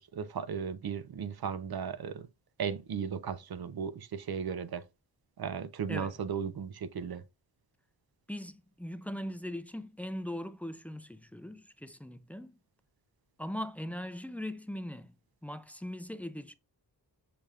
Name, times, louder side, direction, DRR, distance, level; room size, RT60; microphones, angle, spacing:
voice 1, 0.0-2.3 2.6-4.8 5.4-7.2, right 7 dB, 60° right, 0.5 m, -36 dB
voice 2, 8.3-12.6 13.4-15.2 15.4-16.5, left 1 dB, 5° left, 0.3 m, -40 dB
6.8 x 2.3 x 3.3 m
wide cardioid pair, 60°, 42 cm